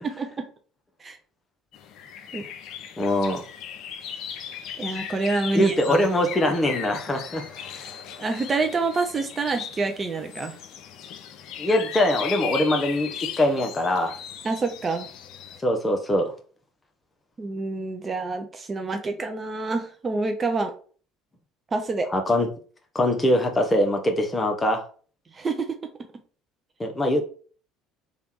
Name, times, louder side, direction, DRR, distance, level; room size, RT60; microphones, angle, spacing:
sound 1, 1.7-15.6, left 8 dB, 55° left, 0.5 m, -37 dB
voice 1, 3.0-3.4 5.5-7.4 11.6-14.2 15.6-16.3 22.1-22.5 22.9-24.8 26.8-27.3, left 1 dB, 20° left, 3 dB, 0.9 m, -22 dB
voice 2, 4.8-6.0 8.2-10.6 14.4-15.1 17.4-20.7 21.7-22.1 25.3-25.8, right 3 dB, 30° right, 5 dB, 0.6 m, -27 dB
3.4 x 2.4 x 4.3 m, 0.41 s
figure-of-eight pair, 60°, 0 cm